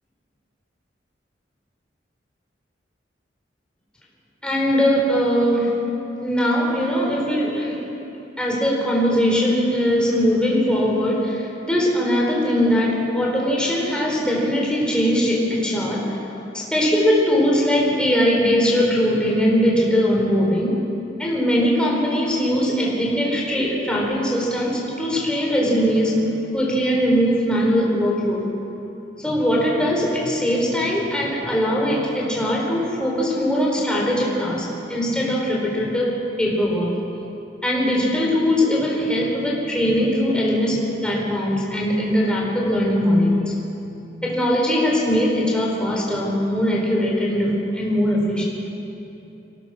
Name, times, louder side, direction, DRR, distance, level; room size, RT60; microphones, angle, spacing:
voice 1, 4.4-5.7 6.2-7.8 8.4-16.0 16.5-20.8 21.2-26.2 26.5-28.4 29.2-36.9 37.6-43.5 44.2-48.4, equal, 5° left, -3 dB, 4.3 m, -20 dB
23.5 x 17.5 x 6.4 m, 2.9 s
head